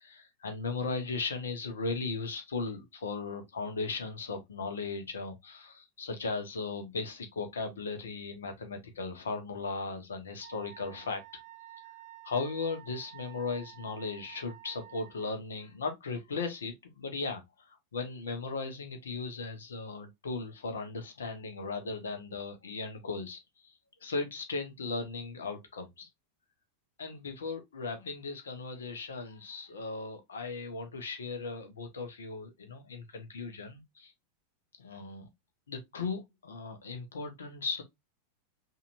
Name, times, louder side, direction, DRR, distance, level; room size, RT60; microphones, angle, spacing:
voice 1, 0.0-11.2 12.2-23.7 24.0-26.1 27.0-34.1 34.8-35.3 35.7-37.8, left 4 dB, 65° left, 1.2 m, -37 dB
Wind instrument woodwind instrument, 10.4-15.3, right 13 dB, 55° right, 0.7 m, -51 dB
5.6 x 2.9 x 2.6 m
figure-of-eight pair, 90°, 0 cm